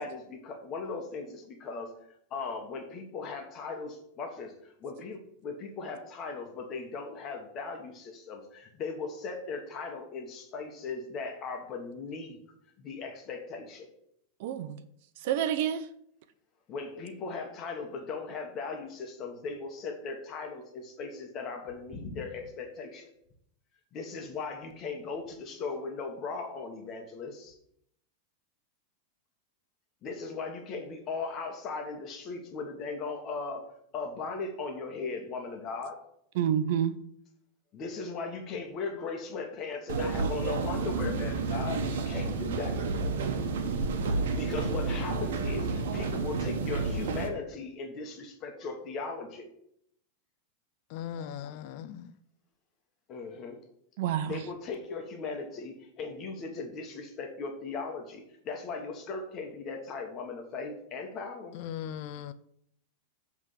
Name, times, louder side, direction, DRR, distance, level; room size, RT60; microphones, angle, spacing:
voice 1, 0.0-1.9 2.3-12.4 12.8-13.9 16.7-23.1 23.9-27.6 30.0-33.7 33.9-36.0 37.7-42.8 44.3-49.5 53.1-53.6 54.2-61.6, left 4 dB, 35° left, 3 dB, 1.3 m, -38 dB
voice 2, 14.4-14.8 15.2-15.8 36.4-37.0 54.0-54.4, right 9 dB, 60° right, 12 dB, 0.7 m, -28 dB
sound 1, 39.9-47.3, right 3 dB, 80° right, 1.1 m, -30 dB
voice 3, 50.9-52.1 61.5-62.3, left 9 dB, 55° left, 13 dB, 0.5 m, -38 dB
7.5 x 3.6 x 6.4 m, 0.71 s
supercardioid pair, 140°, 0 cm